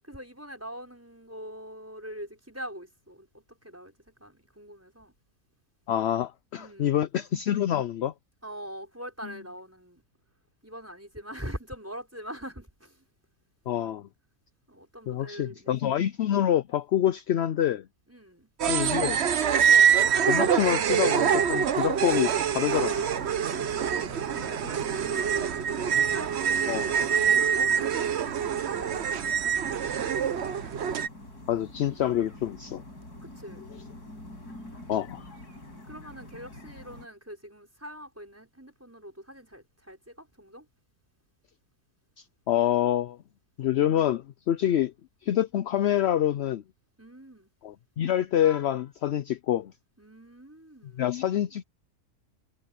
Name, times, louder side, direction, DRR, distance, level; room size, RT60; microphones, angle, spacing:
voice 1, 0.0-5.1 6.6-7.0 8.4-10.0 10.6-13.1 14.7-15.9 18.1-18.5 19.5-19.9 22.7-25.6 26.1-29.7 33.2-33.7 35.9-40.7 44.6-44.8 47.0-47.5 50.0-51.2, equal, 10° right, 5.8 m, -44 dB
voice 2, 5.9-8.1 13.7-14.1 15.1-17.9 18.7-19.2 20.2-22.9 26.7-26.9 31.5-32.8 34.9-35.3 42.2-43.2 43.6-44.9 45.2-46.6 47.6-49.7 51.0-51.6, left 11 dB, 65° left, 0.6 m, -26 dB
sound 1, 18.6-31.1, right 8 dB, 50° right, 1.0 m, -25 dB
sound 2, 20.6-37.1, left 1 dB, 80° left, 7.6 m, -46 dB
omnidirectional pair, 1.7 m